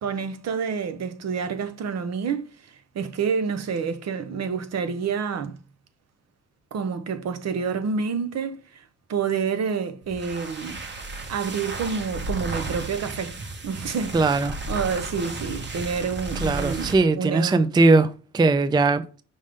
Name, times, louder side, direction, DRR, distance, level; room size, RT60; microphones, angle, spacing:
voice 1, 0.0-5.6 6.7-8.8 9.1-10.8 11.3-13.3 13.6-17.7, right 6 dB, 60° right, 0.9 m, -28 dB
sound 1, 10.0-17.0, right 2 dB, 35° right, 1.4 m, -34 dB
voice 2, 14.1-14.5 16.4-18.1 18.3-19.0, right 3 dB, 15° right, 0.4 m, -19 dB
5.4 x 5.1 x 3.6 m
cardioid pair, 90°, 30 cm